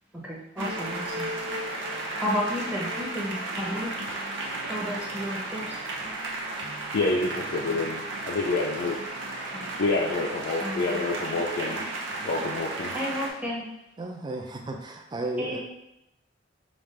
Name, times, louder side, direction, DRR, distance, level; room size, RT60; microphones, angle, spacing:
voice 1, 0.1-1.3 2.2-4.0 4.7-5.8 9.5-9.6 10.6-10.9 12.9-13.7 15.4-15.6, equal, 5° right, -4 dB, 0.8 m, -32 dB
sound 1, 0.6-13.3, right 2 dB, 75° right, 0.7 m, -34 dB
voice 2, 6.9-9.0 9.8-11.8 12.2-13.0, left 3 dB, 60° left, -2 dB, 0.4 m, -28 dB
voice 3, 14.0-15.6, right 1 dB, 25° right, 3 dB, 0.4 m, -34 dB
5.1 x 2.4 x 3.2 m, 0.83 s
head